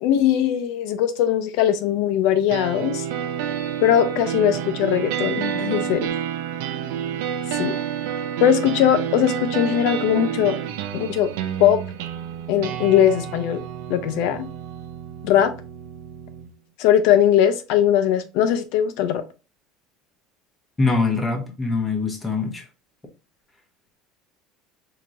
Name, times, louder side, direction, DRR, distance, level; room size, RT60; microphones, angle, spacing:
voice 1, 0.0-3.0 3.8-6.1 7.5-7.8 8.4-10.6 10.9-11.3 11.6-11.8 12.5-13.6 13.9-14.5 15.2-15.5 16.8-19.2, left 10 dB, 65° left, 0.6 m, -20 dB
sound 1, 2.5-16.5, right 9 dB, 80° right, 0.6 m, -29 dB
voice 2, 20.8-22.6, left 4 dB, 10° left, 0.9 m, -23 dB
4.5 x 2.9 x 2.5 m
cardioid pair, 155°, 0 cm